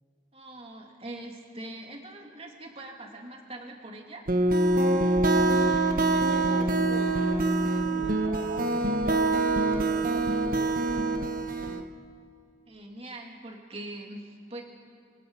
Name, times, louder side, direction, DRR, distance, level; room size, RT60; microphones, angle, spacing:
voice 1, 0.3-4.2 12.7-14.6, right 1 dB, 35° right, 1 dB, 2.9 m, -42 dB
sound 1, 4.3-11.8, right 2 dB, 50° right, 1.3 m, -25 dB
voice 2, 5.3-11.3, right 2 dB, 70° right, -1 dB, 2.2 m, -42 dB
26.5 x 24.5 x 5.7 m, 2.4 s
head